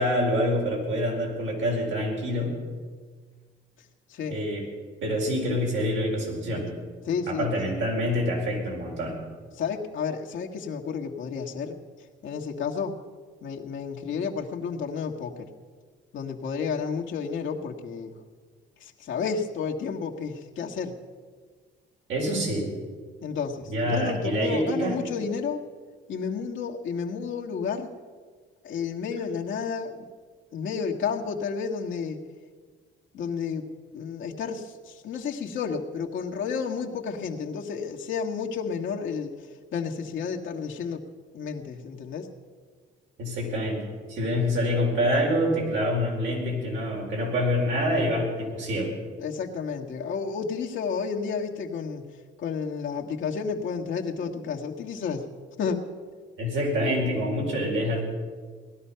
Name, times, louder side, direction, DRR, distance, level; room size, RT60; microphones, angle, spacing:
voice 1, 0.0-2.5 4.3-4.7 5.0-6.7 7.3-9.1 22.1-22.7 23.7-25.0 43.2-43.8 44.1-48.9 56.4-58.0, equal, 75° right, -1 dB, 4.6 m, -26 dB
voice 2, 7.0-7.5 9.5-11.7 12.2-13.0 13.4-15.5 16.1-18.1 18.8-20.9 23.2-25.6 26.1-27.9 28.6-30.1 30.5-32.2 33.1-33.7 33.9-39.4 39.7-41.0 41.3-42.3 49.2-52.1 52.4-55.2 55.6-55.8, left 6 dB, 75° left, 1 dB, 1.6 m, -31 dB
18.5 x 12.0 x 5.7 m, 1.5 s
cardioid pair, 90°, 20 cm